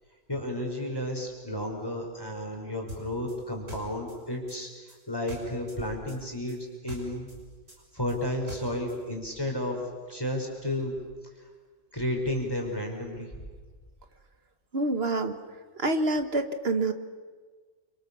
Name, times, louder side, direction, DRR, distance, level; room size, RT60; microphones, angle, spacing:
voice 1, 0.3-4.7 5.1-7.3 7.9-9.8 10.1-10.9 11.9-13.3, left 1 dB, 20° left, 0 dB, 5.2 m, -32 dB
sound 1, 2.9-5.8 6.1-9.0, equal, 80° right, 6.9 m, -44 dB
voice 2, 14.7-15.4 15.8-16.9, right 2 dB, 50° right, 8 dB, 1.8 m, -26 dB
29.0 x 26.5 x 7.1 m, 1.5 s
omnidirectional pair, 1.3 m